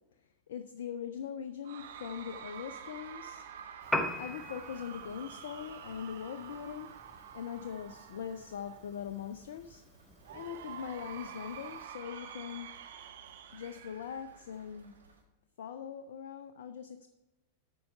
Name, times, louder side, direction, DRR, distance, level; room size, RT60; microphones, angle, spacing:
voice 1, 0.5-3.4 4.2-6.9 7.3-9.8 10.3-12.7 13.5-14.9 15.6-17.1, left 8 dB, 60° left, 10 dB, 0.4 m, -41 dB
Cheering / Crowd, 1.6-9.0 10.2-15.0, right 8 dB, 55° right, 0.7 m, -48 dB
sound 1, 1.8-15.2, right 5 dB, 75° right, 1.3 m, -63 dB
Piano, 3.8-11.9, left 1 dB, 5° left, 0.7 m, -42 dB
8.5 x 5.4 x 5.6 m, 1.0 s
figure-of-eight pair, 90°, 0 cm